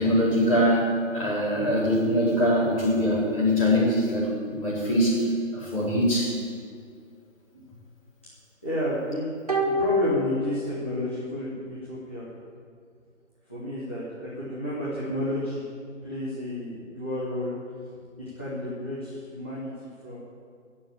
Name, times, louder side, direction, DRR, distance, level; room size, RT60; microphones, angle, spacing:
voice 1, 0.0-6.4, equal, 25° left, -8 dB, 4.6 m, -23 dB
voice 2, 8.6-9.3 9.6-12.3 13.5-15.7 16.0-17.5 18.2-20.2, equal, 10° left, -11 dB, 1.0 m, -32 dB
sound 1, 9.5-11.1 11.4-11.5, left 1 dB, 30° right, 1.1 m, -26 dB
16.0 x 7.2 x 8.7 m, 2.2 s
figure-of-eight pair, 170°, 39 cm